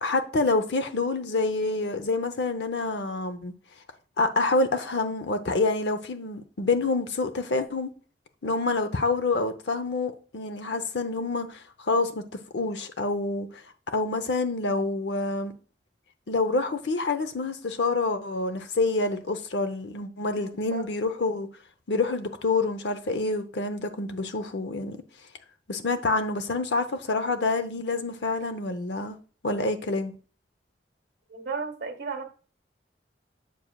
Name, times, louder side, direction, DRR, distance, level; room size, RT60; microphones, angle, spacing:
voice 1, 0.0-3.5 4.2-7.9 8.4-12.2 12.5-13.6 13.9-15.5 16.3-21.5 21.9-25.0 25.7-29.2 29.4-30.1, left 3 dB, 80° left, 0.7 m, -27 dB
voice 2, 20.3-20.9 31.3-32.3, right 4 dB, 70° right, 1.4 m, -35 dB
7.4 x 7.0 x 2.3 m
head